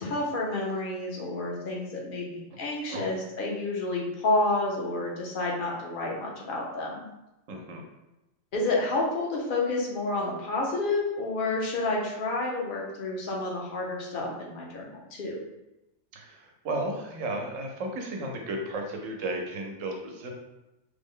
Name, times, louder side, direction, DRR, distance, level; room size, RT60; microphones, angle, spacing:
voice 1, 0.0-7.1 8.5-15.4, left 2 dB, 50° left, -2 dB, 0.8 m, -30 dB
voice 2, 7.5-7.8 16.1-20.3, right 2 dB, 85° right, 1 dB, 1.0 m, -34 dB
3.2 x 2.0 x 3.6 m, 0.95 s
omnidirectional pair, 1.3 m